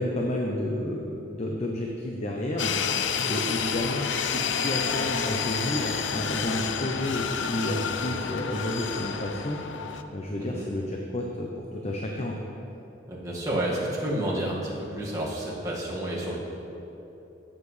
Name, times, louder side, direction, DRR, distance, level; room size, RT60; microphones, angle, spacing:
voice 1, 0.0-2.7 3.3-9.6 10.1-12.4, left 1 dB, 35° left, 0 dB, 0.7 m, -31 dB
sound 1, 2.6-10.0, left 6 dB, 75° left, 0.5 m, -29 dB
voice 2, 13.1-16.4, right 1 dB, 20° right, -6 dB, 1.8 m, -30 dB
16.0 x 7.5 x 3.3 m, 3.0 s
head